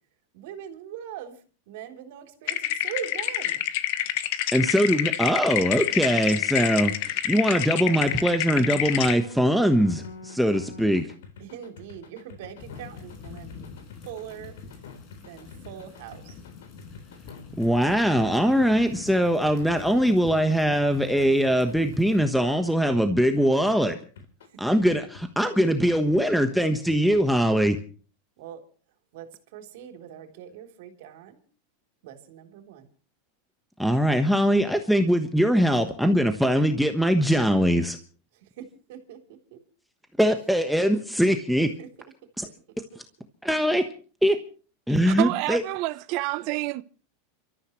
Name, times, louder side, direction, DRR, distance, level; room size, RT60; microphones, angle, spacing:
voice 1, 0.3-1.4 1.7-3.6 11.4-13.8 14.0-14.6 15.2-16.4 24.5-24.6 28.4-28.6 29.1-31.4 32.0-32.9 38.4-39.6 41.8-41.9 42.9-43.0, right 9 dB, 70° right, 3.5 m, -41 dB
sound 1, 2.5-9.2, left 13 dB, 65° left, 1.3 m, -27 dB
voice 2, 4.5-11.1 17.6-24.0 24.6-27.8 33.8-38.0 40.2-41.7 42.4-42.5 43.4-43.9 44.2-44.4 44.9-45.6, equal, ahead, 1.2 m, -22 dB
sound 2, 8.1-23.8 24.2-27.6, left 5 dB, 85° left, 3.8 m, -46 dB
sound 3, 12.6-22.2, left 5 dB, 45° left, 5.6 m, -45 dB
voice 3, 45.1-46.8, right 19 dB, 55° right, 0.8 m, -28 dB
29.0 x 13.5 x 3.2 m
supercardioid pair, 120°, 0 cm